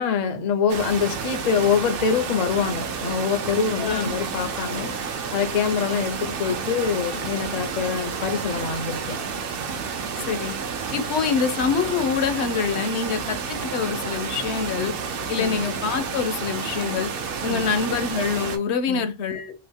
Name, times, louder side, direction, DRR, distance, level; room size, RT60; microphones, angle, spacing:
voice 1, 0.0-9.2 15.4-15.6 17.4-17.7 18.9-19.1, left 6 dB, 50° left, 0.5 m, -25 dB
sound 1, 0.7-18.6, right 5 dB, 60° right, 0.7 m, -30 dB
voice 2, 3.8-4.1 10.2-10.5 10.9-14.9 15.3-17.1 17.4-19.5, left 6 dB, 70° left, 0.8 m, -25 dB
2.9 x 2.5 x 3.4 m
omnidirectional pair, 1.2 m